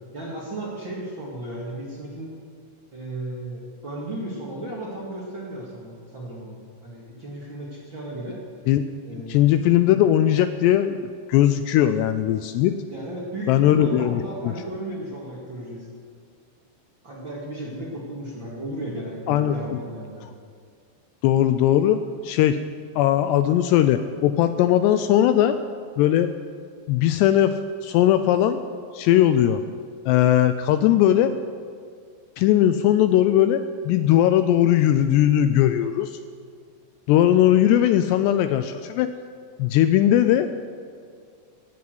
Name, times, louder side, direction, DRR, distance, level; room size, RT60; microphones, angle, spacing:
voice 1, 0.1-2.3 2.9-8.4 9.0-9.4 12.9-15.9 17.0-20.2, right 1 dB, 40° right, -5 dB, 2.0 m, -34 dB
voice 2, 9.3-11.0 11.3-12.8 13.5-14.5 19.3-19.8 21.2-22.6 23.0-25.6 26.0-26.3 26.9-28.6 28.9-29.6 30.1-31.3 32.4-36.2 37.1-39.1 39.6-40.5, left 11 dB, 80° left, 10 dB, 2.5 m, -19 dB
17.0 x 9.4 x 7.9 m, 2.1 s
omnidirectional pair, 5.2 m